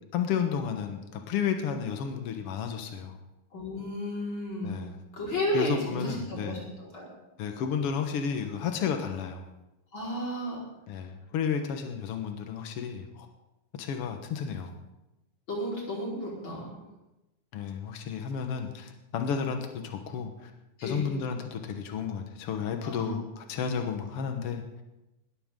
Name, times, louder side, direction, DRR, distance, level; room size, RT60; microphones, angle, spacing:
voice 1, 0.1-3.2 4.6-4.9 5.5-6.6 7.4-9.4 10.9-13.3 13.8-14.7 17.5-20.5 20.8-24.6, left 7 dB, 80° left, 5 dB, 1.3 m, -32 dB
voice 2, 3.5-4.7 5.2-6.6 6.9-7.1 9.9-10.6 15.5-16.6 20.8-21.1 22.8-23.1, equal, 30° left, -4 dB, 5.2 m, -32 dB
20.0 x 15.0 x 3.8 m, 0.97 s
omnidirectional pair, 4.4 m